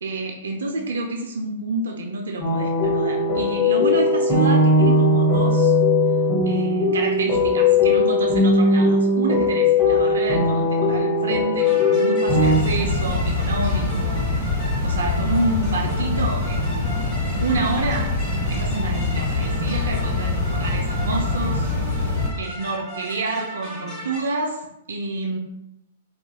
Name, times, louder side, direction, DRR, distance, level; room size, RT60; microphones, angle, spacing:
voice 1, 0.0-5.7 6.5-14.3 14.8-16.9 17.4-18.2 18.5-21.7 22.4-24.6 24.9-25.4, right 2 dB, 65° right, 1 dB, 0.3 m, -28 dB
sound 1, 2.4-12.6, left 2 dB, 15° left, 0.8 m, -19 dB
sound 2, 11.6-24.2, right 1 dB, 30° left, 1.0 m, -37 dB
sound 3, 12.3-22.3, left 3 dB, 70° left, 1.2 m, -24 dB
2.3 x 2.2 x 3.0 m, 0.87 s
figure-of-eight pair, 105°, 0 cm